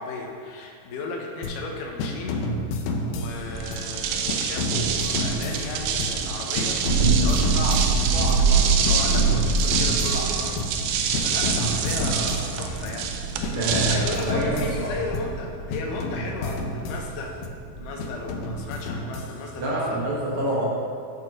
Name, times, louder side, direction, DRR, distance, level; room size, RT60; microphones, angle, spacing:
voice 1, 0.0-2.4 3.1-13.1 13.4-17.4 17.7-20.0, left 3 dB, 70° left, 0 dB, 2.2 m, -35 dB
sound 1, 1.4-1.7 2.0-3.9 4.3-6.3 6.6-8.5 8.8-10.9 11.1-13.1 13.4-15.4 15.7-17.6 18.0-19.7, left 2 dB, 90° left, 1.7 m, -30 dB
Thunder, 3.2-19.0, right 4 dB, 35° right, 2.6 m, -27 dB
sound 2, 3.6-15.0, right 7 dB, 80° right, 2.4 m, -27 dB
voice 2, 13.5-14.9 19.6-20.6, right 1 dB, 60° right, -6 dB, 1.4 m, -27 dB
8.1 x 5.9 x 5.3 m, 2.3 s
omnidirectional pair, 4.3 m